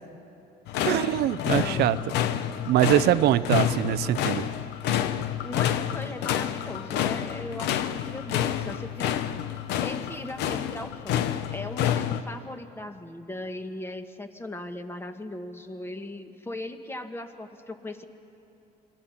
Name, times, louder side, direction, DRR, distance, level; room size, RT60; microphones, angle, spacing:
sound 1, 0.7-12.2, left 10 dB, 85° left, 0.8 m, -28 dB
voice 1, 0.8-2.0 2.7-4.5, right 13 dB, 75° right, 13 dB, 0.6 m, -23 dB
voice 2, 1.5-1.9 5.4-9.1 9.8-18.0, left 2 dB, 15° left, 7 dB, 1.3 m, -38 dB
27.5 x 21.5 x 5.8 m, 2.9 s
cardioid pair, 110°, 17 cm